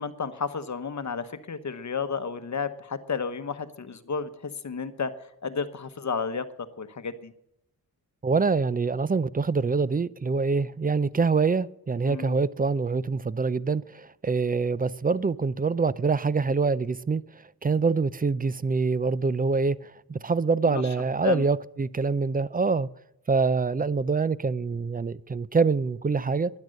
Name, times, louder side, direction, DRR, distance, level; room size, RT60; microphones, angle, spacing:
voice 1, 0.0-6.5 6.8-7.3 12.0-12.4 20.7-20.9 21.2-21.5, left 5 dB, 50° left, 1.1 m, -32 dB
voice 2, 8.2-17.2 17.6-22.9 23.3-26.5, right 4 dB, 25° right, 0.5 m, -25 dB
12.0 x 11.0 x 6.4 m
cardioid pair, 75°, 38 cm